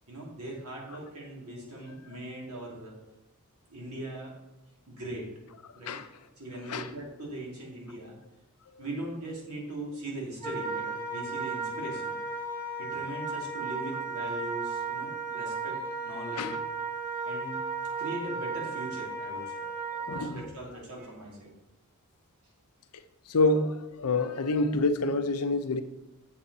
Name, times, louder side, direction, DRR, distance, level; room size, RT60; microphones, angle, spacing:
voice 1, 0.1-2.9 3.7-4.3 4.9-5.3 5.7-6.0 6.4-8.2 8.8-12.1 12.8-16.6 17.2-17.6 17.9-19.5 20.1-21.5, right 1 dB, 85° right, -2 dB, 2.8 m, -40 dB
Wind instrument woodwind instrument, 10.4-20.3, right 4 dB, 35° right, 2.8 m, -35 dB
voice 2, 20.1-20.4 23.3-25.8, left 2 dB, 85° left, 9 dB, 0.7 m, -27 dB
7.7 x 7.6 x 4.1 m, 0.99 s
head